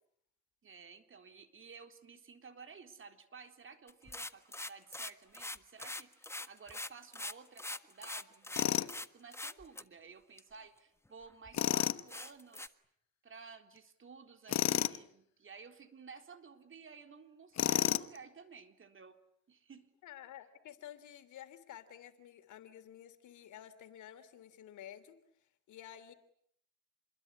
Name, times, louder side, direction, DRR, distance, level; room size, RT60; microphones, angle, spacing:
voice 1, 0.6-12.7 13.2-19.2 19.5-19.9, right 5 dB, 40° right, 8 dB, 4.0 m, -54 dB
sound 1, 3.9-9.1 9.3-9.8 10.4-10.5 11.0-11.1 11.5-11.6 12.1-12.7, left 1 dB, 10° left, 1.5 m, -43 dB
Tools, 8.6-8.9 11.5-12.0 14.5-15.0 17.6-18.2, left 11 dB, 60° left, 1.1 m, -30 dB
voice 2, 20.0-25.2 25.7-26.1, left 11 dB, 80° left, 11 dB, 3.1 m, -51 dB
28.0 x 22.0 x 9.7 m, 0.69 s
cardioid pair, 90°, 30 cm